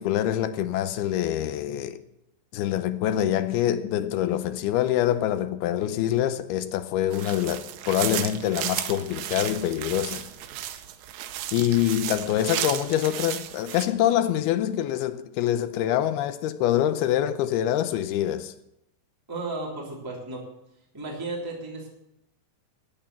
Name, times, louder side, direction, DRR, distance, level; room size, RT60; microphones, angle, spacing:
voice 1, 0.0-2.0 2.5-10.3 11.5-18.5, left 11 dB, 80° left, 2.5 m, -25 dB
sound 1, 7.1-13.9, right 12 dB, 90° right, 3.0 m, -34 dB
voice 2, 19.3-20.4 20.9-21.9, right 2 dB, 5° right, 2.5 m, -34 dB
14.0 x 9.1 x 6.8 m
omnidirectional pair, 4.8 m